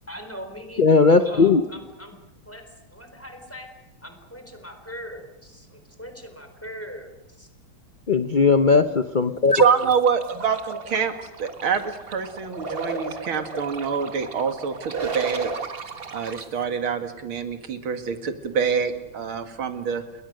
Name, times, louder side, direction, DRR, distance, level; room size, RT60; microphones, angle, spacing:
voice 1, 0.1-2.2 2.4-3.7 4.0-7.5, equal, 5° left, 4.0 m, -40 dB
voice 2, 0.8-1.6 8.1-9.6, left 4 dB, 45° left, 0.6 m, -17 dB
sound 1, 9.5-16.5, right 4 dB, 30° right, 1.5 m, -34 dB
voice 3, 9.5-11.1 11.4-15.5 16.1-20.0, right 6 dB, 85° right, 2.8 m, -25 dB
29.5 x 22.0 x 6.6 m
omnidirectional pair, 2.2 m